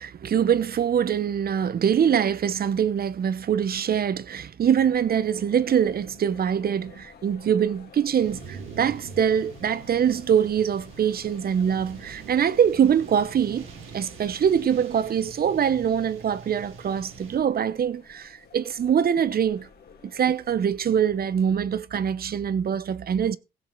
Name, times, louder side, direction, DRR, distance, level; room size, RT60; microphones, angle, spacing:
voice 1, 0.0-13.7 13.9-19.7 20.0-23.4, right 8 dB, 50° right, 1.0 m, -23 dB
sound 1, 4.9-21.6, left 6 dB, 50° left, 3.2 m, -52 dB
sound 2, 8.2-17.4, right 6 dB, 85° right, 3.8 m, -44 dB
16.0 x 7.1 x 4.5 m
cardioid pair, 90°, 20 cm